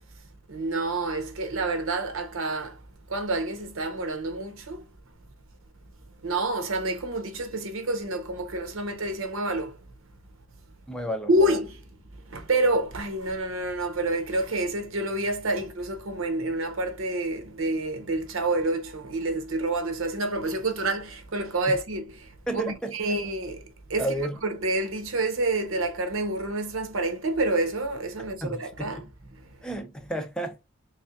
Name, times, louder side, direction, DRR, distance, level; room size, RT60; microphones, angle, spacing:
voice 1, 0.5-2.8 3.1-4.8 6.2-9.7 11.3-11.8 12.3-22.1 22.5-23.6 23.9-29.0 29.3-29.4, right 2 dB, 85° right, 0.9 m, -28 dB
voice 2, 10.9-11.6 21.7-21.8 22.5-23.0 24.0-24.4 28.4-28.9 29.6-30.6, right 1 dB, 5° left, 0.5 m, -32 dB
3.6 x 3.2 x 2.4 m
head